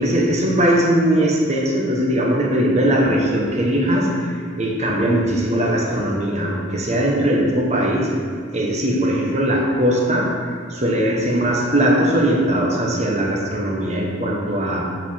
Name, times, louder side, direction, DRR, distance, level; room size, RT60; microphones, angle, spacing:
voice 1, 0.0-8.1 8.5-10.3 10.8-14.8, right 1 dB, 35° right, -1 dB, 1.2 m, -19 dB
8.0 x 4.9 x 5.7 m, 2.2 s
head